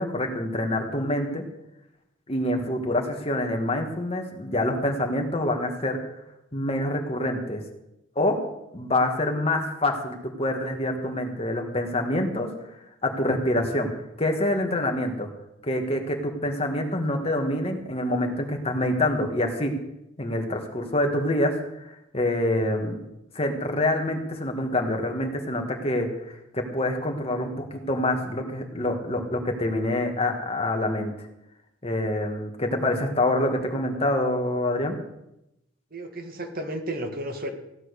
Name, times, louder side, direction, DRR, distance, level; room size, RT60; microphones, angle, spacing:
voice 1, 0.0-1.4 2.3-6.0 6.5-7.6 8.2-8.4 8.7-12.5 13.0-13.9 14.2-15.3 15.6-19.7 20.2-21.5 22.1-23.0 23.4-31.3 31.8-35.0, left 1 dB, 30° left, 3 dB, 2.0 m, -26 dB
voice 2, 35.9-37.5, right 1 dB, 45° right, 4 dB, 2.0 m, -33 dB
16.0 x 10.5 x 6.7 m, 0.86 s
head